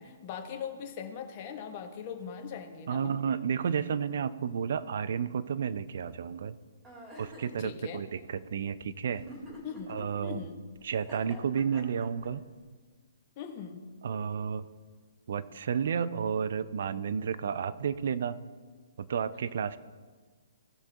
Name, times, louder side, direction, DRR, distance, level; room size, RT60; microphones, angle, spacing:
voice 1, 0.0-3.1 7.6-8.0 9.6-10.6 13.4-13.9, left 7 dB, 35° left, 4 dB, 1.3 m, -41 dB
voice 2, 2.9-6.6 7.2-9.3 9.9-10.4 10.8-12.4 14.0-14.7 15.3-18.4 19.0-19.8, right 7 dB, 55° right, 15 dB, 0.5 m, -31 dB
sound 1, 6.8-7.6 9.1-10.0 10.9-12.3, equal, 15° right, 2.9 m, -47 dB
17.0 x 6.2 x 3.9 m, 1.5 s
figure-of-eight pair, 125°, 0 cm